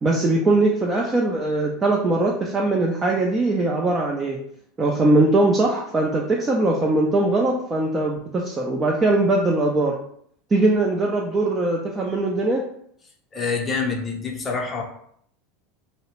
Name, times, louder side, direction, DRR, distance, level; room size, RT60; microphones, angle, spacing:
voice 1, 0.0-4.4 4.8-9.9 10.5-12.6, right 2 dB, 25° right, -2 dB, 0.4 m, -21 dB
voice 2, 13.3-14.8, left 4 dB, 25° left, 0 dB, 0.7 m, -26 dB
2.3 x 2.0 x 3.0 m, 0.67 s
hypercardioid pair, 80°, 0 cm